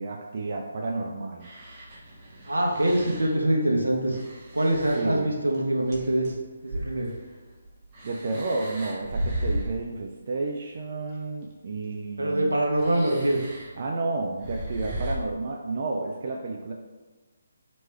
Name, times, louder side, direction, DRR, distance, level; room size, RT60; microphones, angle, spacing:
voice 1, 0.0-1.5 5.0-5.3 8.0-12.5 13.8-16.7, right 3 dB, 45° right, 0 dB, 0.3 m, -31 dB
sound 1, 1.4-3.4 4.1-6.4 6.7-10.0 11.1-11.2 12.7-13.7 14.4-15.2, right 1 dB, 30° right, 0.8 m, -35 dB
voice 2, 2.4-4.2 4.5-6.3 6.6-7.1 12.2-13.4, right 1 dB, 80° right, 0 dB, 0.8 m, -24 dB
3.2 x 3.1 x 3.2 m, 1.3 s
figure-of-eight pair, 145°, 0 cm